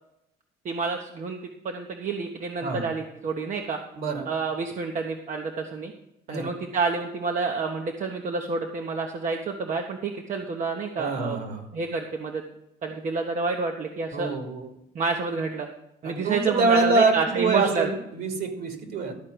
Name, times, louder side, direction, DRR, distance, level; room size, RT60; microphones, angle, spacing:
voice 1, 0.6-3.8 4.2-5.9 6.3-11.4 11.7-12.4 12.8-14.3 14.9-15.7 16.0-17.9, right 4 dB, 50° right, 3 dB, 1.1 m, -29 dB
voice 2, 4.0-4.3 6.3-6.5 11.0-11.7 14.1-14.7 16.0-19.1, right 3 dB, 65° right, 5 dB, 2.6 m, -25 dB
13.0 x 4.5 x 7.9 m, 0.84 s
cardioid pair, 110°, 17 cm